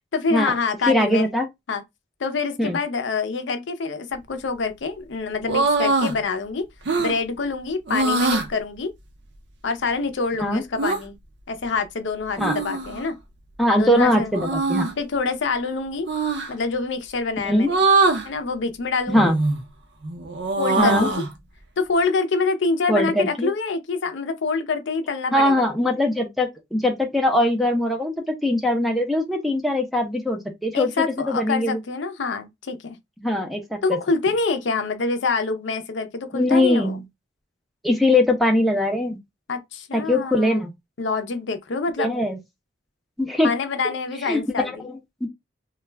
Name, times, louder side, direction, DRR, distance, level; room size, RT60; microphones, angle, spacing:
voice 1, 0.1-1.3 1.7-1.8 2.2-6.7 7.0-8.9 9.6-11.2 11.5-13.1 13.7-14.3 15.0-16.1 16.5-17.8 18.2-19.3 20.6-21.2 21.8-25.7 30.7-33.0 33.8-37.0 39.5-40.6 41.0-42.1 43.4-44.8, left 4 dB, 70° left, 0.5 m, -26 dB
voice 2, 0.9-1.5 2.6-2.8 10.4-10.6 12.4-12.6 13.6-14.9 17.4-17.7 19.1-19.4 20.8-21.1 22.9-23.5 25.3-30.9 31.2-31.8 33.2-33.8 36.3-37.0 37.8-39.2 39.9-40.7 42.0-42.4 43.2-43.5 44.3-45.3, left 1 dB, ahead, 0.5 m, -21 dB
sound 1, 5.4-6.2 6.9-7.2 7.9-8.5 10.8-11.0 12.4-13.0 14.3-15.0 16.1-16.5 17.7-18.3 19.2-19.6 20.0-21.3, right 3 dB, 60° right, 0.5 m, -22 dB
2.3 x 2.1 x 3.2 m
head